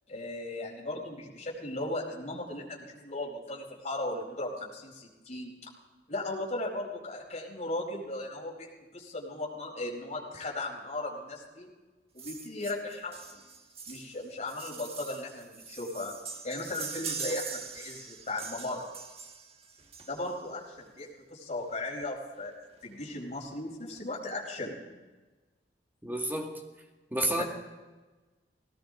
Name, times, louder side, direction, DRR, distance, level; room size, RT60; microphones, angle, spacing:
voice 1, 0.1-5.5 6.1-11.7 12.1-13.4 13.9-16.1 16.4-18.8 20.1-22.5 22.8-24.8 27.4-27.5, left 2 dB, 40° left, -2 dB, 4.5 m, -37 dB
sound 1, 12.2-20.5 21.6-21.7 22.0-22.1 22.3-22.5 22.8-23.4 23.9-24.0, right 5 dB, 35° right, 1.3 m, -42 dB
voice 2, 26.0-26.6 27.1-27.4, right 1 dB, 10° right, 1 dB, 2.2 m, -30 dB
19.5 x 17.5 x 3.9 m, 1.2 s
head